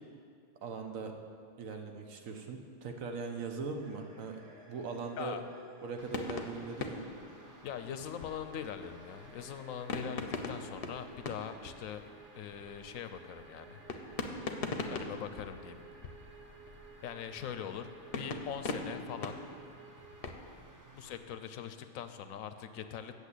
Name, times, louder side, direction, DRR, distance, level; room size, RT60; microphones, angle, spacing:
voice 1, 0.6-1.1 1.6-4.4 4.7-5.4 5.8-7.0, right 4 dB, 70° right, 4 dB, 1.3 m, -40 dB
sound 1, 3.8-20.3, right 4 dB, 50° right, 1.3 m, -57 dB
sound 2, 6.0-8.8 9.9-12.2 12.5-12.8 13.9-16.9 18.1-20.3, left 3 dB, 50° left, 0.8 m, -41 dB
sound 3, 6.0-21.2, right 1 dB, 20° right, 0.5 m, -59 dB
voice 2, 7.6-12.0 12.4-13.8 14.9-15.8 17.0-19.4 20.9-23.1, left 8 dB, 75° left, 9 dB, 1.0 m, -42 dB
8.3 x 7.1 x 8.3 m, 2.3 s
omnidirectional pair, 1.5 m